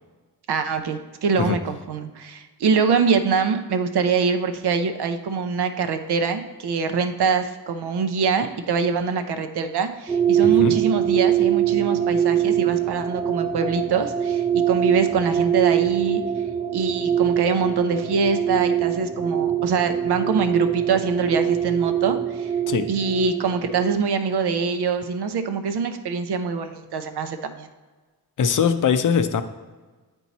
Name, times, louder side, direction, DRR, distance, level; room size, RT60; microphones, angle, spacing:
voice 1, 0.5-16.2 16.7-22.5 22.9-27.7, right 5 dB, 85° right, 7 dB, 0.7 m, -24 dB
sound 1, 10.1-24.0, right 10 dB, 15° right, 0.3 m, -23 dB
voice 2, 10.4-10.8 22.7-22.9 28.4-29.4, left 7 dB, 55° left, 10 dB, 0.5 m, -21 dB
8.4 x 4.5 x 4.1 m, 1.3 s
cardioid pair, 75°, 38 cm